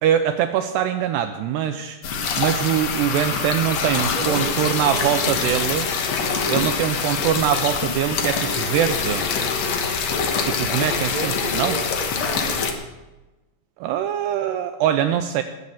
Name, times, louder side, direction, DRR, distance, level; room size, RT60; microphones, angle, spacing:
voice 1, 0.0-2.0 2.4-5.9 6.5-9.3 10.4-11.8 13.8-15.4, right 10 dB, 80° right, 8 dB, 2.5 m, -23 dB
sound 1, 2.0-12.7, left 5 dB, 85° left, 1.5 m, -24 dB
voice 2, 4.1-5.3 10.5-12.8, right 3 dB, 20° right, 0 dB, 1.1 m, -34 dB
19.5 x 7.9 x 7.0 m, 1.1 s
omnidirectional pair, 5.4 m